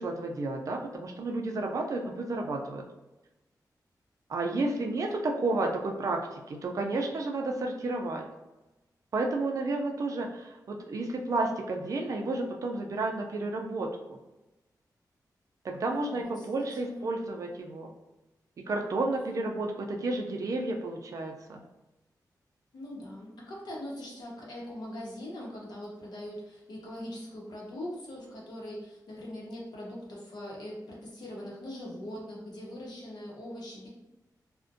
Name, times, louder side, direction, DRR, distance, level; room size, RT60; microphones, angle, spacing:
voice 1, 0.0-2.9 4.3-8.3 9.1-13.9 15.6-17.9 18.7-21.6, right 2 dB, 50° right, 2 dB, 0.3 m, -31 dB
voice 2, 4.5-5.0 15.9-16.5 16.8-17.0 22.7-33.9, left 1 dB, 75° left, -3 dB, 0.7 m, -41 dB
2.5 x 2.1 x 2.5 m, 1.0 s
wide cardioid pair, 175°, 7 cm